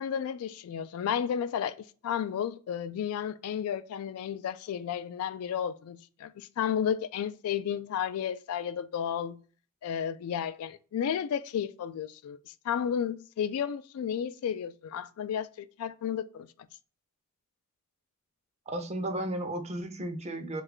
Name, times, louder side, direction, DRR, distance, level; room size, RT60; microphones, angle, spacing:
voice 1, 0.0-1.7 2.0-9.4 9.8-16.5, left 8 dB, 85° left, 0.3 m, -32 dB
voice 2, 18.7-20.6, right 1 dB, 30° right, 0.5 m, -34 dB
3.1 x 2.4 x 3.5 m
head